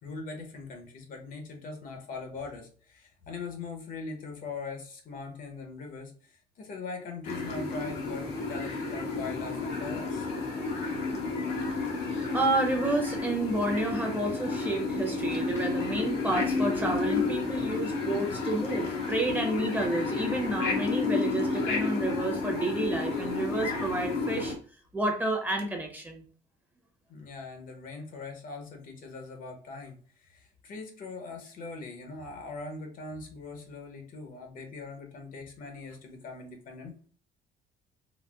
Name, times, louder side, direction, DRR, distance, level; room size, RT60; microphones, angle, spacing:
voice 1, 0.0-10.3 27.1-37.1, left 4 dB, 55° left, 4 dB, 0.8 m, -41 dB
sound 1, 7.2-24.6, left 4 dB, 80° left, 0.9 m, -31 dB
voice 2, 11.7-12.1 12.3-24.5 24.9-26.2, right 2 dB, 10° right, 1 dB, 0.8 m, -30 dB
3.9 x 2.1 x 2.3 m, 0.42 s
cardioid pair, 110°, 17 cm